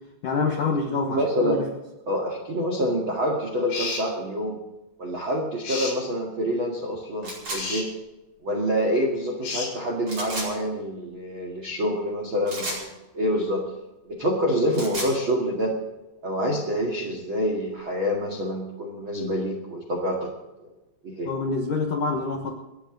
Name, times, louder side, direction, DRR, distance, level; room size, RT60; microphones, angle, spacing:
voice 1, 0.2-1.7 21.3-22.5, left 4 dB, 70° left, 1 dB, 2.0 m, -26 dB
voice 2, 1.1-1.5 2.1-4.6 5.0-7.9 8.4-13.6 14.2-15.7 16.2-20.3 21.0-21.3, equal, 55° right, 0 dB, 1.3 m, -26 dB
sound 1, 3.7-4.1 5.6-6.0 7.5-7.9 9.4-9.7, left 4 dB, 90° left, 9.2 m, -31 dB
sound 2, 7.2-7.6 10.0-10.5 12.5-12.8 14.5-15.1, right 1 dB, 30° right, 5.4 m, -32 dB
29.0 x 9.9 x 3.9 m, 1.0 s
omnidirectional pair, 5.8 m